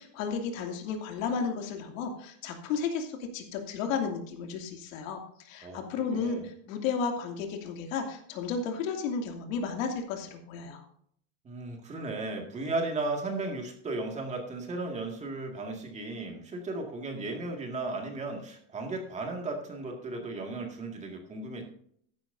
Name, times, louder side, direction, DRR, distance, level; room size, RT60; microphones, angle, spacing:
voice 1, 0.0-10.8, left 5 dB, 85° left, 4 dB, 2.7 m, -33 dB
voice 2, 5.6-6.4 11.4-21.6, right 2 dB, 15° right, 2 dB, 2.0 m, -35 dB
14.0 x 10.5 x 2.7 m, 0.63 s
cardioid pair, 170°, 39 cm